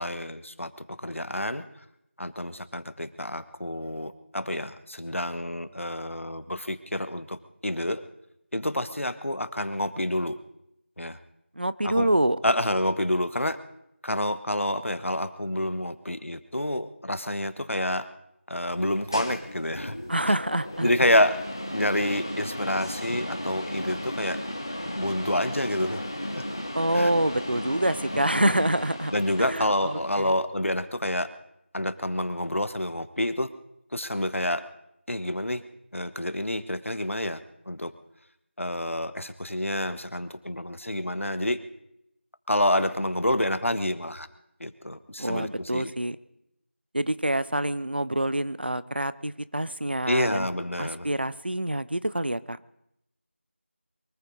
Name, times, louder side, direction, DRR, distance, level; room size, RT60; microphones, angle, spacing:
voice 1, 0.0-1.8 2.2-8.0 8.5-10.4 11.0-11.2 11.8-12.1 12.4-13.6 14.0-18.1 18.5-20.0 20.8-21.4 21.7-24.4 25.0-26.5 26.9-27.1 28.1-28.7 29.1-31.3 31.7-33.5 33.9-34.6 35.1-35.6 35.9-37.4 37.7-37.9 38.6-41.6 42.5-44.3 44.6-45.9 50.1-51.1, left 1 dB, 85° left, 13 dB, 1.2 m, -28 dB
voice 2, 11.6-12.4 20.1-20.9 26.8-29.1 29.4-30.3 45.2-46.2 46.9-50.5 50.8-52.6, right 1 dB, 50° right, 17 dB, 0.6 m, -26 dB
sound 1, 18.7-30.3, left 1 dB, 20° left, 0.9 m, -35 dB
23.5 x 14.0 x 4.0 m, 0.80 s
figure-of-eight pair, 175°, 7 cm